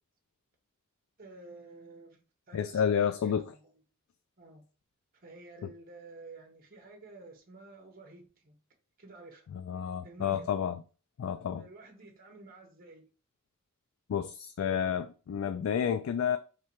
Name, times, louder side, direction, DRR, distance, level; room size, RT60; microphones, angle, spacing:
voice 1, 1.2-3.8 4.4-4.6 5.1-8.6 9.0-9.5 10.0-10.5 11.2-13.1, right 3 dB, 45° right, 0.9 m, -51 dB
voice 2, 2.5-3.5 9.5-10.8 11.2-11.6 14.1-16.4, left 8 dB, 80° left, 0.3 m, -30 dB
3.2 x 2.8 x 4.4 m
head